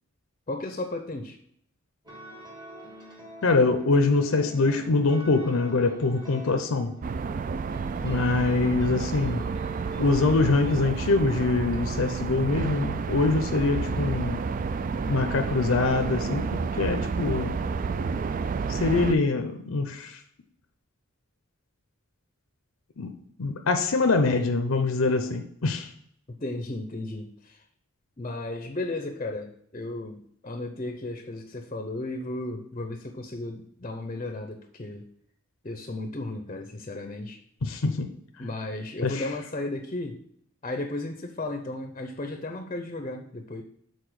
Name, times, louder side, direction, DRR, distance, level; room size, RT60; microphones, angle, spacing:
voice 1, 0.5-1.4 26.3-27.6 28.2-35.1 35.6-37.4 38.4-40.2 40.6-43.6, left 2 dB, 30° left, 6 dB, 0.6 m, -34 dB
sound 1, 2.0-11.8, equal, 20° right, 1.2 m, -47 dB
voice 2, 3.4-6.9 8.0-9.5 10.0-14.4 15.1-17.6 18.7-20.2 23.0-25.9 37.6-38.1 38.4-38.5 39.0-39.3, left 3 dB, 75° left, 6 dB, 0.6 m, -24 dB
sound 2, 7.0-19.2, right 5 dB, 40° right, 0.3 m, -30 dB
7.0 x 4.0 x 6.3 m, 0.68 s
head